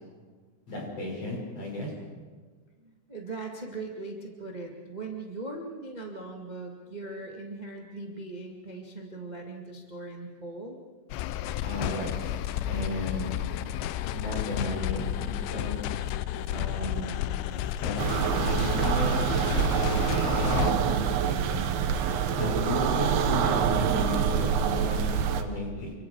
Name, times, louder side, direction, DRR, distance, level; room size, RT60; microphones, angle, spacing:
voice 1, 0.7-1.9 11.6-12.1 12.7-13.3 14.1-15.8 16.5-17.2 17.8-18.0 18.3-19.1 19.6-21.7 22.4-25.9, left 1 dB, 35° left, -1 dB, 7.0 m, -34 dB
voice 2, 2.8-10.8 16.4-16.5, right 3 dB, 25° right, 0 dB, 0.9 m, -40 dB
sound 1, 11.1-20.7, left 12 dB, 85° left, 3.0 m, -31 dB
sound 2, 18.0-25.4, right 8 dB, 70° right, 2.9 m, -26 dB
29.5 x 25.0 x 4.8 m, 1.5 s
omnidirectional pair, 4.9 m